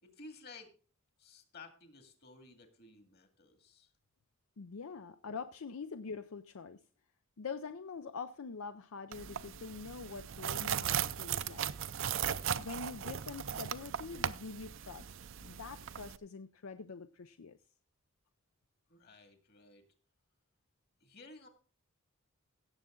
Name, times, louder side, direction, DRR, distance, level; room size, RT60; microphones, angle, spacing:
voice 1, 0.0-0.7 1.2-3.9 18.9-19.9 21.0-21.5, left 3 dB, 45° left, 7 dB, 2.1 m, -55 dB
voice 2, 4.6-6.8 7.4-11.7 12.6-15.1 15.4-17.6, left 5 dB, 75° left, 11 dB, 0.5 m, -45 dB
sound 1, 9.1-16.2, right 9 dB, 60° right, 0.5 m, -37 dB
16.5 x 7.5 x 3.8 m, 0.37 s
head